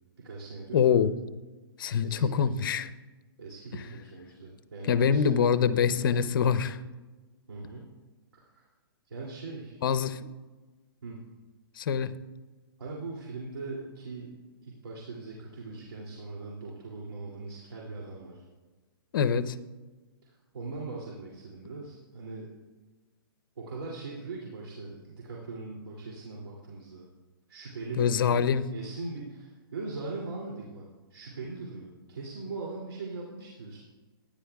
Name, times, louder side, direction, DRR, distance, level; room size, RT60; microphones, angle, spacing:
voice 1, 0.2-1.0 2.0-2.6 3.4-6.2 7.5-7.9 8.3-8.6 9.0-9.8 11.0-11.2 12.8-14.3 14.6-18.4 20.2-22.5 23.6-27.1 27.5-28.3 28.7-33.8, right 3 dB, 80° right, -3 dB, 2.7 m, -40 dB
voice 2, 0.7-1.1 1.8-2.9 4.9-6.8 9.8-10.2 11.8-12.1 19.1-19.6 28.0-28.7, left 7 dB, 60° left, 13 dB, 0.7 m, -24 dB
27.5 x 10.0 x 2.3 m, 1.3 s
hypercardioid pair, 150°, 13 cm